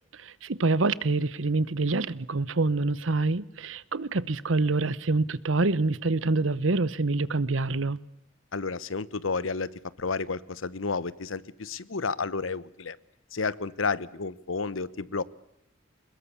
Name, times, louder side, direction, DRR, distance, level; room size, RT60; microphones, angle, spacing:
voice 1, 0.2-8.0, right 3 dB, 80° right, 19 dB, 1.0 m, -26 dB
voice 2, 8.5-9.7 10.0-13.0 13.3-15.2, left 4 dB, 90° left, 19 dB, 1.0 m, -31 dB
23.0 x 21.0 x 8.5 m, 0.76 s
head